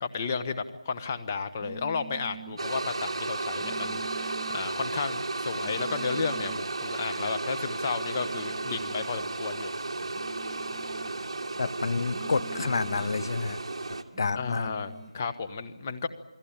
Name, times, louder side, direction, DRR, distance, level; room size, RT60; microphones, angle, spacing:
voice 1, 0.0-9.7 14.3-16.1, left 5 dB, 25° left, 6 dB, 1.4 m, -33 dB
sound 1, 1.6-2.6 3.6-4.6 5.6-6.6 8.1-9.2 10.1-11.2 12.1-13.2 14.1-15.2, right 6 dB, 5° left, 3.9 m, -47 dB
sound 2, 2.6-14.0, right 3 dB, 45° right, 2.5 m, -34 dB
voice 2, 11.6-13.6 14.2-14.7, left 4 dB, 40° left, 15 dB, 0.9 m, -29 dB
28.5 x 20.5 x 8.9 m, 0.94 s
figure-of-eight pair, 170°, 3 cm